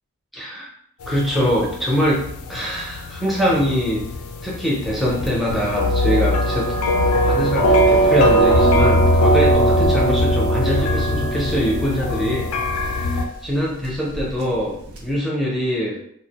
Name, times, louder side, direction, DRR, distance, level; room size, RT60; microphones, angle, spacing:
voice 1, 0.3-0.7 1.1-4.0 4.4-6.7 7.2-12.5 12.7-14.8 15.0-16.0, equal, ahead, -5 dB, 0.4 m, -23 dB
sound 1, 1.0-13.3, equal, 80° left, 0.3 m, -20 dB
Waves surf, 5.0-15.2, equal, 85° right, 0.5 m, -35 dB
2.3 x 2.0 x 2.8 m, 0.69 s
head